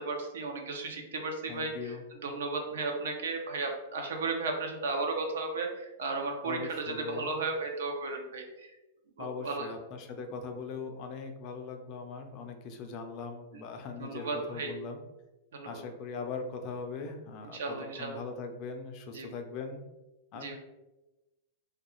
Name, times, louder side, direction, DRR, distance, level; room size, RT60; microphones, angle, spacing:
voice 1, 0.0-2.0 2.2-8.7 9.2-9.7 13.5-13.6 14.0-14.7 15.5-15.8 17.5-18.2 19.1-19.3 20.3-20.6, right 3 dB, 85° right, 3 dB, 0.5 m, -35 dB
voice 2, 1.5-2.0 6.4-7.3 9.2-15.0 15.6-17.6 17.9-19.8 20.3-20.6, left 4 dB, 40° left, 5 dB, 0.4 m, -40 dB
2.3 x 2.3 x 3.0 m, 1.0 s
supercardioid pair, 145°, 0 cm